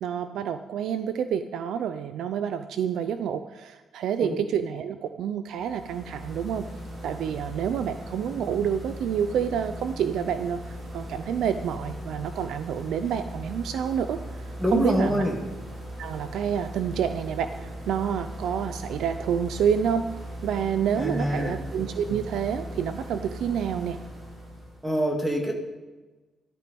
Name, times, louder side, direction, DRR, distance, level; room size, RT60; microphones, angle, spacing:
voice 1, 0.0-6.7 7.0-14.2 14.7-15.2 16.0-20.0 20.4-24.0, right 8 dB, 85° right, 10 dB, 0.7 m, -28 dB
sound 1, 5.5-24.9, equal, 40° right, 3.4 m, -39 dB
voice 2, 14.6-15.4 20.9-21.5 24.8-25.5, equal, 10° right, 2 dB, 2.1 m, -25 dB
14.0 x 12.5 x 5.4 m, 1.2 s
cardioid pair, 155°, 0 cm